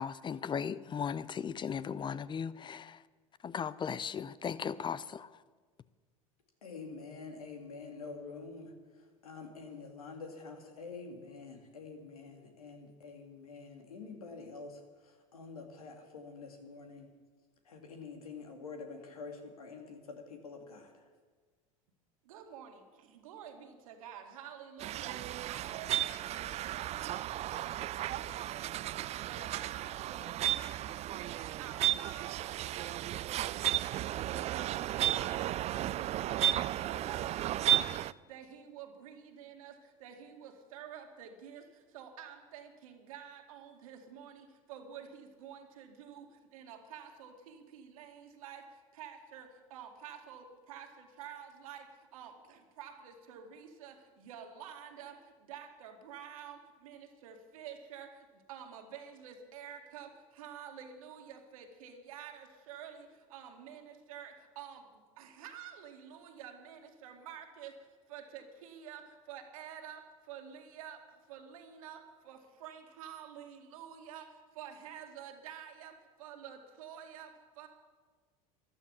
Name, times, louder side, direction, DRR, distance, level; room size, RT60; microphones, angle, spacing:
voice 1, 0.0-3.0 3.4-5.3, left 7 dB, 25° left, 0.6 m, -37 dB
voice 2, 6.6-8.7 9.2-14.8 15.3-17.1 17.7-20.9, left 4 dB, 85° left, 2.4 m, -47 dB
voice 3, 22.2-77.7, right 8 dB, 70° right, 2.2 m, -49 dB
sound 1, 24.8-38.1, right 13 dB, 35° right, 0.4 m, -34 dB
14.0 x 12.0 x 7.3 m
hypercardioid pair, 80°, 18 cm